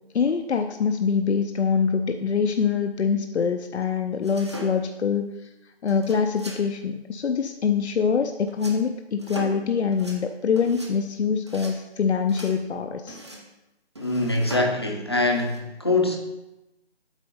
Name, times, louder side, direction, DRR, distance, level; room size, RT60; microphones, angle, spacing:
voice 1, 0.1-5.5 5.8-13.2, left 6 dB, 75° left, 6 dB, 0.6 m, -24 dB
sound 1, 4.2-5.0 5.9-6.6 8.5-8.8 9.2-9.7 9.9-10.2 10.6-10.9 11.5-11.8 12.3-12.6 13.1-13.5 13.9-14.8 15.3-15.6, right 1 dB, 25° right, 0.7 m, -39 dB
voice 2, 14.0-16.2, left 2 dB, 25° left, 2 dB, 0.6 m, -23 dB
8.2 x 4.1 x 5.4 m, 0.97 s
figure-of-eight pair, 170°, 33 cm